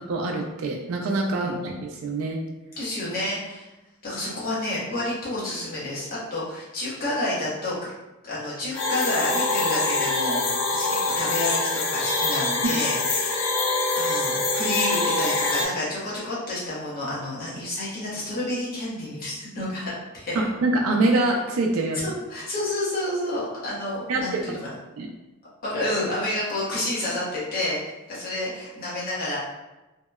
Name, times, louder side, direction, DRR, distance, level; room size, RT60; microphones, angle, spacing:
voice 1, 0.1-2.4 12.6-12.7 20.4-22.0 24.1-24.4 25.0-25.1, right 2 dB, 75° right, 1 dB, 0.3 m, -24 dB
voice 2, 2.8-3.7 4.0-7.9 8.2-13.5 13.9-20.4 22.0-24.6 25.6-27.8 28.1-29.4, left 1 dB, 45° left, -8 dB, 0.9 m, -29 dB
sound 1, 8.7-15.7, left 3 dB, 65° left, 0.5 m, -24 dB
2.7 x 2.0 x 2.3 m, 1.0 s
head